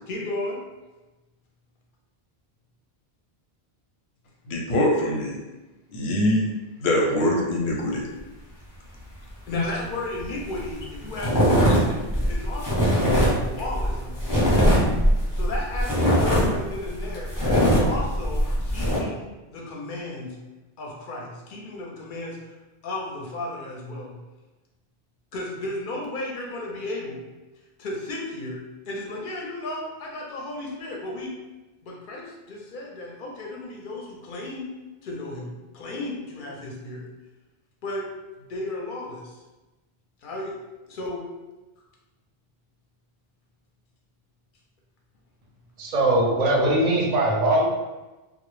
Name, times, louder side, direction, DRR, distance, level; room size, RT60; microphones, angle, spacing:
voice 1, 0.1-0.6 9.5-14.2 15.3-20.4 20.8-22.5 22.8-24.2 25.3-27.2 27.8-31.4 31.8-34.7 35.0-37.1 37.8-38.1 38.4-39.4 40.2-40.6 40.9-41.2, left 2 dB, 60° left, -1 dB, 0.6 m, -34 dB
voice 2, 4.5-5.4 5.9-6.5 6.8-8.1 9.5-9.6, left 1 dB, 90° left, -1 dB, 0.8 m, -23 dB
sound 1, 10.2-10.3 10.5-10.8 11.1-19.0, equal, 20° left, 0.6 m, -21 dB
voice 3, 45.8-47.6, right 1 dB, 50° right, -2 dB, 0.6 m, -21 dB
2.0 x 2.0 x 3.0 m, 1.1 s
omnidirectional pair, 1.0 m